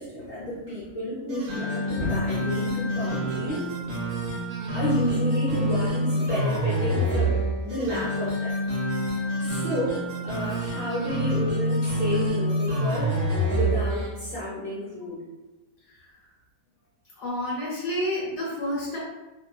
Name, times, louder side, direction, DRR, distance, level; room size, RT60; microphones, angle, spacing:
voice 1, 0.0-3.7 4.7-7.3 7.6-8.5 9.4-13.1 13.5-15.2, equal, 60° left, -9 dB, 0.9 m, -31 dB
sound 1, 1.3-14.1, equal, 65° right, 1.0 m, -27 dB
voice 2, 17.2-19.0, left 1 dB, 85° left, -8 dB, 1.3 m, -30 dB
2.8 x 2.2 x 2.3 m, 1.1 s
omnidirectional pair, 1.6 m